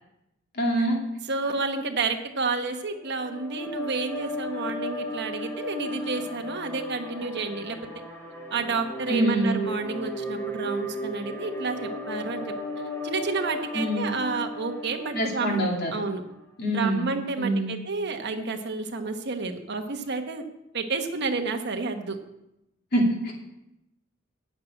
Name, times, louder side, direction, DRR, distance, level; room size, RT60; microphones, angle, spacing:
voice 1, 0.5-1.0 9.1-9.5 13.7-14.1 15.1-15.9 16.6-17.1 17.4-17.7 22.9-23.3, right 1 dB, 50° left, -1 dB, 2.6 m, -25 dB
voice 2, 1.3-7.8 8.5-12.5 13.0-15.7 15.9-16.2 16.7-20.4 20.7-22.2, right 4 dB, 55° right, 5 dB, 1.2 m, -30 dB
sound 1, 3.0-16.3, left 1 dB, 10° left, 1.8 m, -35 dB
9.4 x 6.6 x 8.8 m, 0.88 s
head